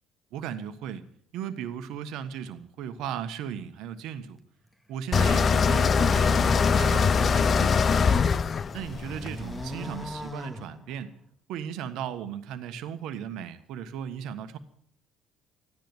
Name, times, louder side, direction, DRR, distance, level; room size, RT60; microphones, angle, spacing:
voice 1, 0.3-1.0 1.3-4.4 4.9-8.1 8.7-11.1 11.5-14.6, right 8 dB, 70° right, 11 dB, 1.4 m, -36 dB
sound 1, 5.1-10.1, left 5 dB, 45° left, 0.6 m, -23 dB
sound 2, 5.3-8.0 8.4-11.3, equal, 10° left, 2.2 m, -40 dB
14.5 x 10.5 x 9.0 m, 0.65 s
hypercardioid pair, 60°, 0 cm